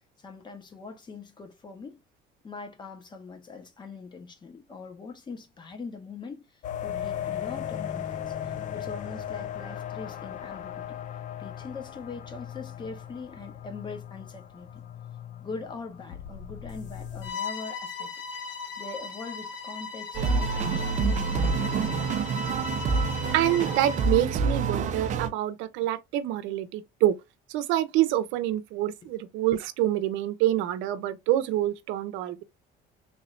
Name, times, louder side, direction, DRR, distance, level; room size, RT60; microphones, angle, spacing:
voice 1, 0.2-2.0 2.4-11.0 11.4-14.8 15.4-18.1 18.8-22.3, left 4 dB, 25° left, 1.0 m, -42 dB
sound 1, 6.6-17.3, left 10 dB, 40° left, 0.5 m, -37 dB
Bowed string instrument, 17.2-24.2, left 5 dB, 70° left, 1.1 m, -37 dB
sound 2, 20.1-25.3, right 4 dB, 40° right, 0.6 m, -27 dB
voice 2, 23.3-27.2 27.5-32.4, right 13 dB, 85° right, 0.7 m, -26 dB
3.5 x 3.1 x 2.5 m
cardioid pair, 150°, 19 cm